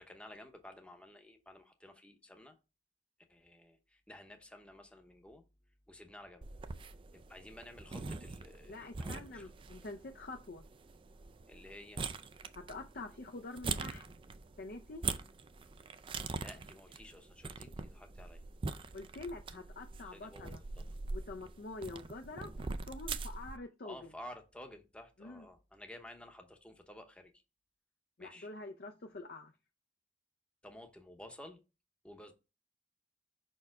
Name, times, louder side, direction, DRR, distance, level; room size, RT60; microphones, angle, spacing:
voice 1, 0.0-2.6 3.3-5.4 5.9-6.5 7.1-9.5 11.5-12.0 16.4-18.4 20.0-20.8 23.8-27.4 28.2-28.5 30.6-31.6 32.0-32.3, left 1 dB, 5° left, 0.8 m, -53 dB
sound 1, 6.4-23.6, right 4 dB, 25° right, 0.4 m, -43 dB
voice 2, 8.7-10.6 12.5-14.1 14.6-15.0 18.9-20.6 21.1-24.0 25.2-25.5 28.2-29.5, left 2 dB, 50° left, 0.6 m, -46 dB
5.3 x 4.5 x 4.7 m
head